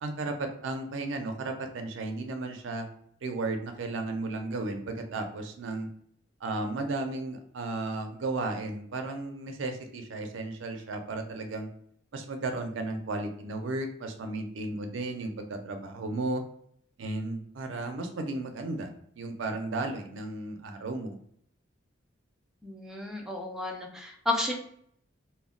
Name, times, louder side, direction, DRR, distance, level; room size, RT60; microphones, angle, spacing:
voice 1, 0.0-2.9 3.2-5.9 6.4-11.7 12.1-16.4 17.0-18.9 19.2-21.2, right 2 dB, 90° right, 5 dB, 0.5 m, -34 dB
voice 2, 22.6-24.5, left 2 dB, 5° right, 0 dB, 0.4 m, -32 dB
2.1 x 2.1 x 3.6 m, 0.66 s
head